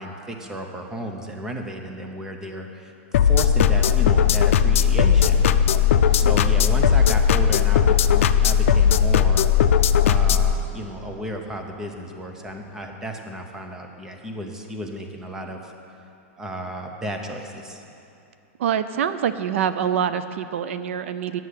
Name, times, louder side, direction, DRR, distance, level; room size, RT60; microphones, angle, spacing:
voice 1, 0.0-5.4 6.1-9.5 10.0-15.7 16.4-17.8, equal, 5° right, 3 dB, 0.7 m, -33 dB
sound 1, 3.1-10.5, left 8 dB, 70° left, 0.5 m, -17 dB
sound 2, 3.6-12.9, left 3 dB, 10° left, 1.2 m, -43 dB
voice 2, 18.6-21.4, right 8 dB, 65° right, 12 dB, 0.5 m, -25 dB
9.6 x 7.5 x 8.3 m, 2.7 s
supercardioid pair, 170°, 7 cm